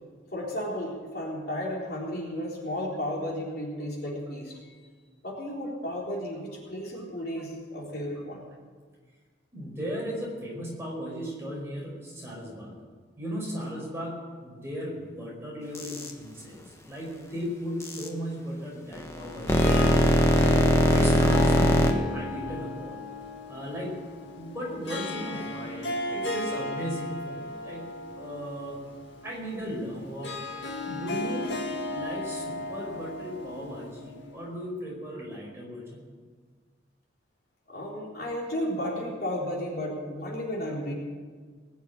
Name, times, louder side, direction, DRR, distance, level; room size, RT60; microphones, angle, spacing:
voice 1, 0.3-4.6 5.2-8.5 37.7-40.9, left 1 dB, 50° left, -3 dB, 3.8 m, -33 dB
voice 2, 9.5-12.7 13.2-20.4 20.7-23.0 23.5-24.1 24.3-28.8 29.2-30.4 30.8-31.5 31.9-36.0, equal, 15° right, -4 dB, 5.0 m, -36 dB
sound 1, 15.7-16.1 17.8-18.1 18.9-21.9, equal, 15° left, 1.2 m, -21 dB
Harp, 19.2-34.5, left 3 dB, 70° left, 2.0 m, -35 dB
20.0 x 7.2 x 8.8 m, 1.5 s
head